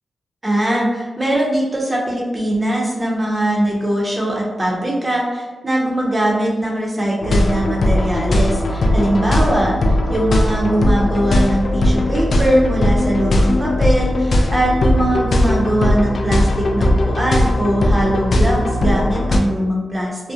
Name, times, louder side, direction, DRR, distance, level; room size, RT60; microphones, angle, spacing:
voice 1, 0.4-20.3, right 1 dB, 25° right, -3 dB, 0.7 m, -20 dB
sound 1, 7.2-19.4, left 1 dB, 65° left, 0.3 m, -18 dB
2.7 x 2.1 x 2.4 m, 1.2 s
cardioid pair, 85°, 0 cm